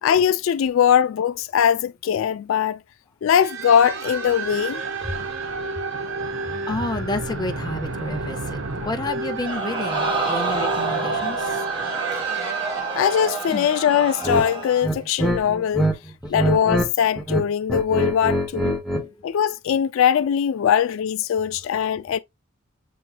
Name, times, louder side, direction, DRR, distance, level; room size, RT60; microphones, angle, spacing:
voice 1, 0.0-2.8 3.2-4.8 12.3-12.4 12.9-15.9 16.3-18.8 19.2-22.2, left 8 dB, 75° left, 0.3 m, -21 dB
sound 1, 3.4-14.6, right 4 dB, 65° right, 0.9 m, -31 dB
voice 2, 5.8-11.6 13.5-13.7, left 2 dB, 20° left, 0.7 m, -30 dB
Crowd, 9.4-14.9 15.3-15.4, right 3 dB, 25° right, 1.5 m, -28 dB
sound 2, 14.2-14.5 14.8-15.9 16.2-16.9 17.2-19.1, right 1 dB, ahead, 0.9 m, -23 dB
6.9 x 3.0 x 2.3 m
head